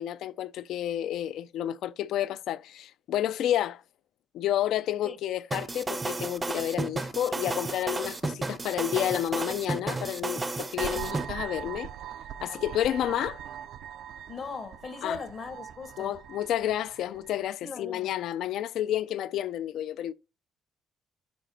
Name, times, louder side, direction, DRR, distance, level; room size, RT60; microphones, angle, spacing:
voice 1, 0.0-3.8 4.3-11.9 12.4-13.4 15.0-15.2 16.0-20.1, left 11 dB, 75° left, 0.3 m, -30 dB
sound 1, 5.5-11.3, right 2 dB, 20° right, 0.5 m, -32 dB
sound 2, 10.8-17.5, right 9 dB, 70° right, 0.4 m, -41 dB
voice 2, 14.3-16.2 17.6-18.1, left 5 dB, 45° left, 0.8 m, -39 dB
6.9 x 4.9 x 3.2 m
cardioid pair, 125°, 0 cm